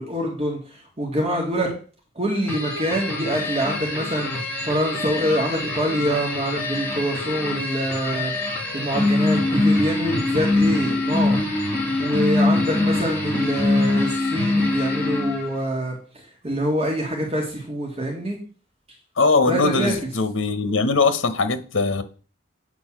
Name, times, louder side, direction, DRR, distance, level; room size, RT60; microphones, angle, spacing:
voice 1, 0.0-1.7 2.2-8.3 8.7-11.4 12.0-18.4 19.5-19.9, equal, 30° right, 2.0 m, -25 dB
sound 1, 2.5-15.6, left 2 dB, 10° left, 2.4 m, -24 dB
voice 2, 19.2-22.0, left 3 dB, 80° left, 1.1 m, -21 dB
8.6 x 4.3 x 6.0 m
head